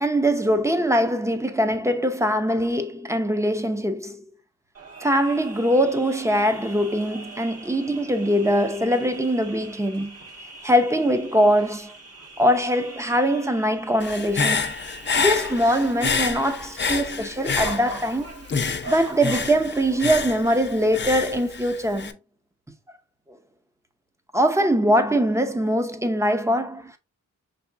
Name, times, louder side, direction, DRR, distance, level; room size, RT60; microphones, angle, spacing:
voice 1, 0.0-4.2 5.0-10.2 10.6-11.9 12.4-14.7 15.2-18.4 18.9-22.2 24.3-27.0, equal, 10° right, 0.7 m, -22 dB
sound 1, 4.7-20.4, right 3 dB, 50° right, 1.6 m, -42 dB
Human voice / Breathing, 14.0-18.2 18.5-22.1, left 5 dB, 35° left, 0.6 m, -27 dB
5.8 x 3.4 x 2.7 m
wide cardioid pair, 100°, 32 cm